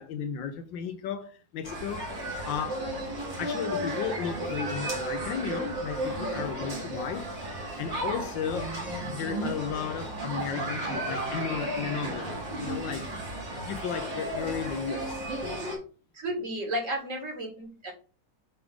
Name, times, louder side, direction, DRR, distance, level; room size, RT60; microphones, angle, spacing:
voice 1, 0.0-2.1 2.4-2.9 3.4-7.3 7.8-8.8 9.1-13.0 13.6-15.2, left 7 dB, 90° left, 1.6 m, -34 dB
sound 1, 1.6-15.8, right 1 dB, 85° right, 2.9 m, -34 dB
voice 2, 16.1-17.9, right 1 dB, 45° right, 2.1 m, -33 dB
7.3 x 3.8 x 3.5 m
omnidirectional pair, 1.9 m